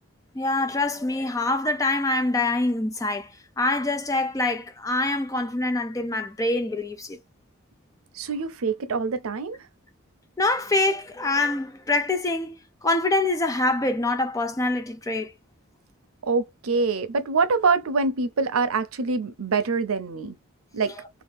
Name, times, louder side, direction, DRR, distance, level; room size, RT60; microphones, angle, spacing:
voice 1, 0.4-3.3 3.6-7.2 10.4-12.6 12.8-15.3, left 2 dB, 15° left, 0.4 m, -25 dB
voice 2, 8.2-9.6 16.2-20.4 20.7-20.9, right 4 dB, 85° right, 0.6 m, -25 dB
2.8 x 2.4 x 3.3 m
head